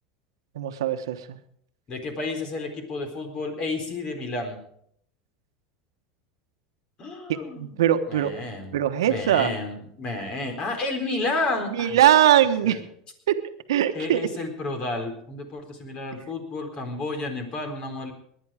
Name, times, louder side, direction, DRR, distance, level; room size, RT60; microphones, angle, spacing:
voice 1, 0.5-1.4 7.3-8.3 8.7-9.5 11.7-12.8 13.3-13.4 13.7-14.2, right 11 dB, 90° right, 8 dB, 1.2 m, -21 dB
voice 2, 1.9-4.6 7.0-7.7 8.1-8.8 9.1-12.0 12.6-12.8 13.9-18.1, left 2 dB, 40° left, 5 dB, 4.0 m, -31 dB
19.5 x 10.5 x 4.9 m, 0.68 s
supercardioid pair, 115°, 2 cm